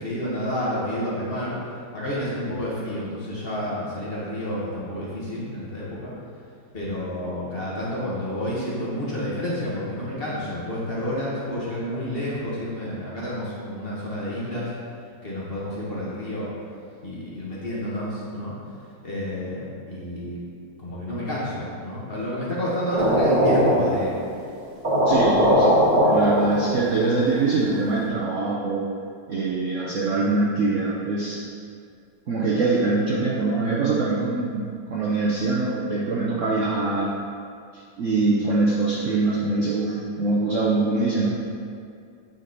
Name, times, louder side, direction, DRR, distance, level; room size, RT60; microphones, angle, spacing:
voice 1, 0.0-6.1 6.7-14.7 15.2-16.5 17.0-18.5 19.0-20.4 20.8-24.1, equal, 35° left, -7 dB, 1.1 m, -30 dB
sound 1, 22.9-24.2 24.5-24.6 24.8-27.1, equal, 30° right, 1.0 m, -20 dB
voice 2, 25.1-25.8 26.0-28.9 29.3-31.4 32.3-37.1 37.7-41.3, right 3 dB, 85° right, -5 dB, 0.6 m, -23 dB
8.7 x 4.0 x 3.9 m, 2.3 s
omnidirectional pair, 2.2 m